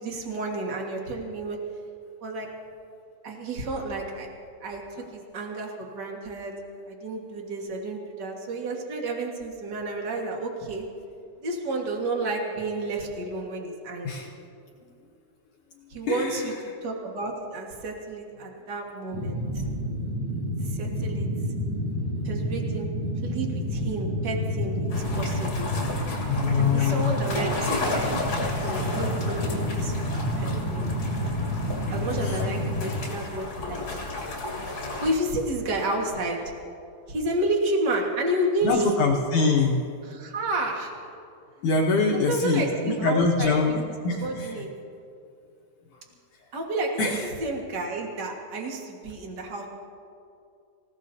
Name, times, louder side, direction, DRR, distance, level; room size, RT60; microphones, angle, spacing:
voice 1, 0.0-1.6 2.2-2.5 3.2-4.3 4.6-4.8 5.1-6.5 6.9-10.9 11.4-14.2 15.9-16.5 16.8-19.7 20.6-21.5 22.2-22.9 23.2-25.7 26.6-28.1 28.4-30.1 30.4-31.0 31.9-33.8 35.0-36.4 37.1-38.9 40.0-40.9 42.1-43.7 44.2-44.7 46.5-49.7, right 2 dB, 70° right, 0 dB, 1.0 m, -31 dB
voice 2, 16.0-16.5 19.3-19.4 23.2-23.3 26.3-27.1 32.2-32.4 38.6-39.8 41.6-44.6 47.0-47.3, left 4 dB, 70° left, -1 dB, 1.9 m, -24 dB
sound 1, 19.1-32.9, equal, 30° right, 5.7 m, -29 dB
sound 2, 24.9-35.1, left 2 dB, 35° left, 2.8 m, -33 dB
27.0 x 17.0 x 2.8 m, 2.5 s
omnidirectional pair, 4.8 m